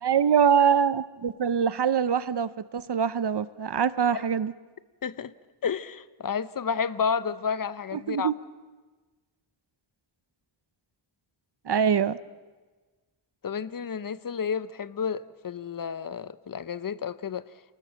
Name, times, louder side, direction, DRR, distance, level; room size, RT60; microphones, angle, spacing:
voice 1, 0.0-4.5 7.9-8.3 11.7-12.2, right 7 dB, 55° right, 0.7 m, -24 dB
voice 2, 5.0-5.3 5.6-8.3 13.4-17.4, left 6 dB, 40° left, 0.8 m, -31 dB
28.5 x 19.5 x 7.6 m
wide cardioid pair, 135°, 50 cm